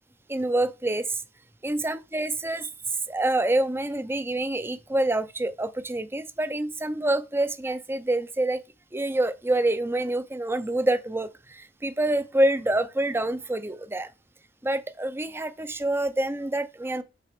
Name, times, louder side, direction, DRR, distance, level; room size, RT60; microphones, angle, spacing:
voice 1, 0.3-1.2 1.6-2.7 3.1-8.6 8.9-14.1 14.6-17.0, right 1 dB, 15° right, 0.5 m, -26 dB
7.5 x 4.0 x 5.0 m
head